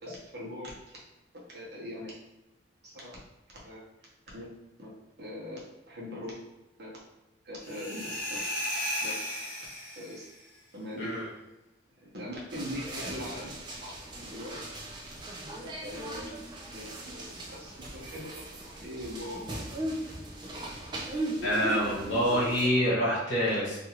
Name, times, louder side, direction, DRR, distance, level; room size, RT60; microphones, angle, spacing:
voice 1, 0.0-1.0 1.5-2.1 2.8-3.2 3.6-3.8 4.3-4.4 4.8-5.6 5.9-6.3 6.8-6.9 7.4-8.4 9.0-9.1 10.0-10.2 10.7-11.1 12.0-13.9 14.2-14.6 15.6-16.3 16.7-19.5, left 1 dB, 55° right, -5 dB, 0.9 m, -41 dB
sound 1, 7.6-10.4, equal, 50° left, 0.8 m, -35 dB
sound 2, 12.5-22.7, right 1 dB, 25° right, 0.4 m, -38 dB
voice 2, 21.4-23.8, equal, 70° left, -7 dB, 1.2 m, -26 dB
2.7 x 2.4 x 2.9 m, 1.0 s
head